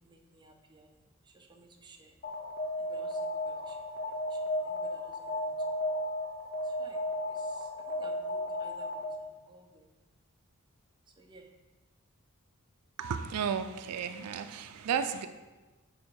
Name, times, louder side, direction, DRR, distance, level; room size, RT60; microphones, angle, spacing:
voice 1, 0.0-2.2 2.8-5.5 6.6-9.9 11.1-11.5, right 2 dB, 20° right, 2 dB, 0.6 m, -57 dB
Alarm, 2.2-9.3, left 1 dB, 45° left, 0.7 m, -34 dB
voice 2, 13.0-15.3, right 7 dB, 90° right, 10 dB, 0.4 m, -33 dB
6.3 x 3.5 x 4.8 m, 1.2 s
head